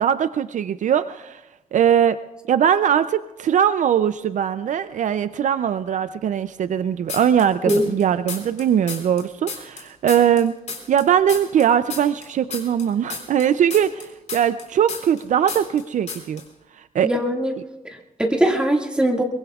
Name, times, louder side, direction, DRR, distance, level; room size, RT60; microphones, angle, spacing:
voice 1, 0.0-1.4 1.7-2.2 2.5-10.5 10.9-16.4 16.8-17.1, right 9 dB, 65° right, 12 dB, 0.4 m, -20 dB
sound 1, 7.1-8.0 8.3-11.0 11.3-15.2 15.5-15.8 16.1-16.4, left 5 dB, 60° left, 3.8 m, -33 dB
voice 2, 17.0-17.5 17.8-19.2, right 1 dB, 5° right, 0 dB, 1.9 m, -21 dB
23.0 x 23.0 x 2.4 m, 1.0 s
wide cardioid pair, 155°, 14 cm